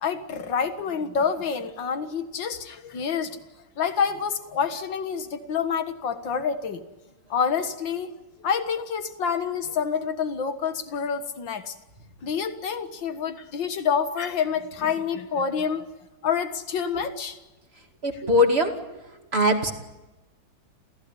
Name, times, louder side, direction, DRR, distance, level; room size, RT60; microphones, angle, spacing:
voice 1, 0.0-3.4 3.8-6.8 7.3-8.1 8.4-11.7 12.2-15.9 16.2-17.4, left 6 dB, 65° left, 9 dB, 2.2 m, -27 dB
voice 2, 18.0-18.8 19.3-19.7, left 1 dB, 30° right, 4 dB, 2.6 m, -21 dB
29.0 x 16.0 x 9.9 m, 1.1 s
omnidirectional pair, 2.3 m